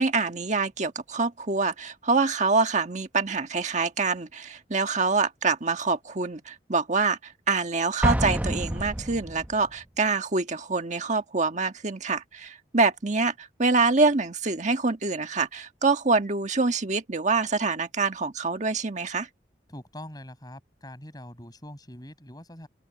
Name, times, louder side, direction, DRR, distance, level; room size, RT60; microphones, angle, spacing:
voice 1, 0.0-19.3, right 4 dB, 45° right, 1.5 m, -25 dB
Explosion, 8.0-9.7, equal, 10° right, 0.9 m, -27 dB
voice 2, 19.7-22.7, left 1 dB, 25° left, 6.7 m, -43 dB
open air
head